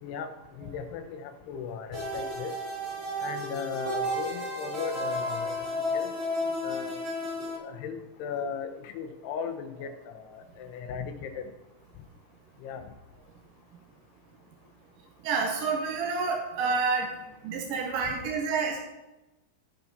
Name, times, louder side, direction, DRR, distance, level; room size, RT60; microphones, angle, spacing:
voice 1, 0.0-2.5 3.2-6.1 6.6-7.0 7.4-11.4 12.6-12.9, left 6 dB, 85° left, 6 dB, 3.0 m, -37 dB
sound 1, 1.9-7.6, left 1 dB, 20° right, 2.6 m, -32 dB
voice 2, 15.2-17.2 17.4-18.8, right 4 dB, 70° right, 1 dB, 2.4 m, -28 dB
17.0 x 5.8 x 4.0 m, 0.99 s
omnidirectional pair, 4.6 m